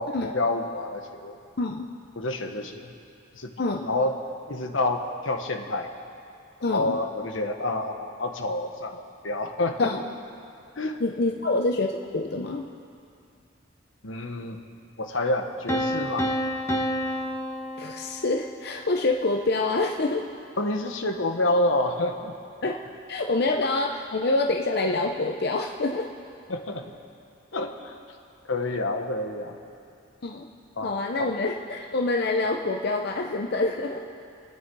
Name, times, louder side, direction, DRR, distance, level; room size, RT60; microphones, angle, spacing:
voice 1, 0.0-1.4 2.2-2.9 3.3-3.5 3.8-4.1 4.5-5.9 6.7-9.9 10.8-11.0 14.0-14.6 15.0-16.3 20.6-22.3 26.5-26.8 27.5-28.0 28.5-29.6 30.8-30.9 31.2-31.3, left 2 dB, 80° left, 4 dB, 1.3 m, -28 dB
voice 2, 1.6-1.9 3.6-3.9 6.6-7.0 9.8-10.0 11.0-12.7 17.8-20.3 22.6-22.8 23.1-26.1 30.2-30.5 30.8-34.0, left 2 dB, 55° left, 2 dB, 0.7 m, -26 dB
Piano, 15.7-18.6, equal, 15° left, 1.2 m, -29 dB
29.0 x 9.8 x 4.7 m, 2.5 s
head